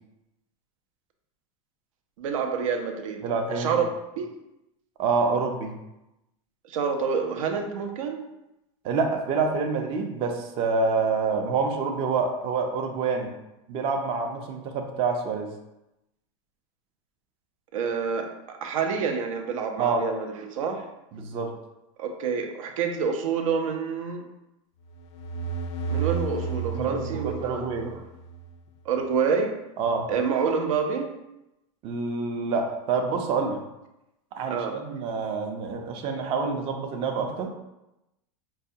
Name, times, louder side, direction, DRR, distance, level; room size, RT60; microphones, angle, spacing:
voice 1, 2.2-3.2 3.5-3.8 4.2-4.3 6.7-8.2 17.7-20.8 22.0-24.2 25.9-28.0 28.9-29.5 30.1-31.1 34.5-34.8, right 6 dB, 90° right, 4 dB, 0.6 m, -28 dB
voice 2, 3.2-3.8 5.0-5.8 8.8-13.3 13.7-15.5 19.8-20.0 21.1-21.5 26.7-27.9 29.8-30.1 31.8-33.6 34.4-37.5, right 4 dB, 35° right, 3 dB, 0.4 m, -27 dB
sound 1, 24.9-28.5, right 5 dB, 60° left, 0.4 m, -32 dB
4.7 x 2.3 x 2.7 m, 0.93 s
supercardioid pair, 140°, 17 cm